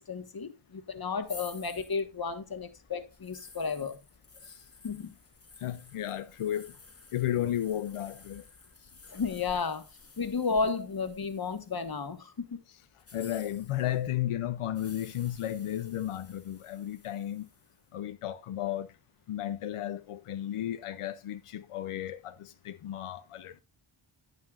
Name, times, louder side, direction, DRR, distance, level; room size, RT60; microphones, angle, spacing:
voice 1, 0.0-4.0 4.8-5.1 9.1-9.9 10.2-12.6, left 5 dB, 45° left, 1.3 m, -33 dB
sound 1, 1.2-12.2 12.9-17.8, left 4 dB, 30° left, 1.1 m, -53 dB
voice 2, 5.6-6.7 7.1-8.5 13.1-17.5 17.9-18.9 19.3-23.6, left 12 dB, 90° left, 0.6 m, -34 dB
9.4 x 9.3 x 2.4 m
cardioid pair, 60°, 50 cm